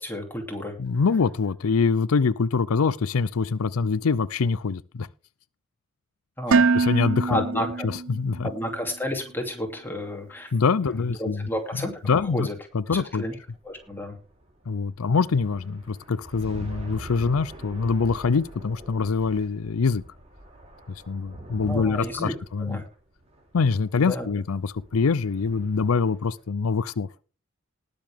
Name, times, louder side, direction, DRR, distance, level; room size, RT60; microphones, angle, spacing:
voice 1, 0.0-0.7 6.4-6.7 7.3-7.9 8.4-10.5 11.1-12.5 12.9-13.4 13.6-14.2 21.6-22.3 22.6-22.8 24.0-24.3, left 1 dB, 10° left, 2.7 m, -31 dB
voice 2, 0.8-5.1 6.7-7.4 7.8-8.5 10.5-11.5 11.8-12.5 12.7-13.2 14.7-20.0 20.9-22.8 23.5-27.1, left 5 dB, 90° left, 0.5 m, -24 dB
Dishes pots and pans, 6.5-8.6, right 4 dB, 65° right, 0.5 m, -23 dB
sound 1, 12.8-26.4, right 1 dB, 30° right, 3.5 m, -44 dB
19.5 x 6.9 x 3.5 m
head